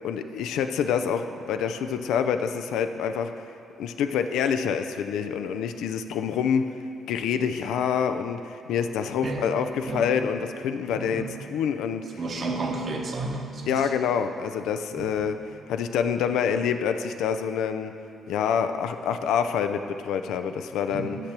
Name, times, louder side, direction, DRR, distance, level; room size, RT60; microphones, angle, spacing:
voice 1, 0.0-3.3 3.8-6.7 7.1-12.0 13.7-15.4 15.7-17.9 18.3-21.2, left 7 dB, 85° left, 8 dB, 0.4 m, -26 dB
voice 2, 10.9-11.3 12.2-13.8 15.0-15.2 20.9-21.2, right 3 dB, 45° right, 2 dB, 1.0 m, -32 dB
5.9 x 5.8 x 6.8 m, 2.6 s
cardioid pair, 90°, 0 cm